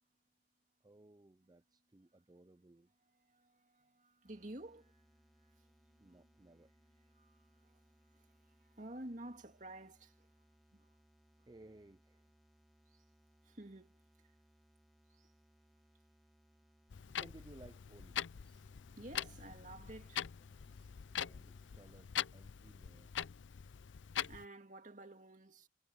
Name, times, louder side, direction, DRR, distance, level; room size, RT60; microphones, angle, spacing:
voice 1, 0.8-2.9 6.0-6.7 11.5-12.3 17.1-18.2 21.1-23.1, right 2 dB, 20° right, 0.4 m, -60 dB
voice 2, 3.1-10.4 10.7-11.0 11.4-11.5 12.9-13.1 13.4-14.4 15.1-15.3 18.5-18.6 19.0-20.9 24.2-25.7, right 1 dB, 40° right, 2.4 m, -54 dB
sound 1, 4.2-22.1, equal, ahead, 1.6 m, -70 dB
Clock, 16.9-24.5, left 9 dB, 85° left, 0.5 m, -43 dB
head